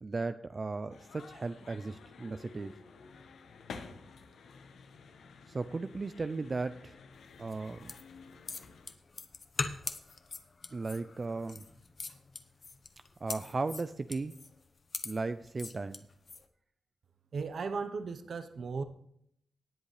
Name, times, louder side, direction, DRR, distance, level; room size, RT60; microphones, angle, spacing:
voice 1, 0.0-2.7 5.5-7.0 7.4-7.9 10.7-11.6 13.2-14.3 15.0-16.0, right 3 dB, 35° right, 11 dB, 0.4 m, -36 dB
sound 1, 0.9-8.9, left 5 dB, 85° left, 1.1 m, -52 dB
sound 2, 7.4-16.4, left 4 dB, 40° left, 0.9 m, -42 dB
voice 2, 17.3-18.8, right 4 dB, 60° right, 9 dB, 0.9 m, -36 dB
18.5 x 8.0 x 3.3 m, 0.70 s
wide cardioid pair, 110°, 0 cm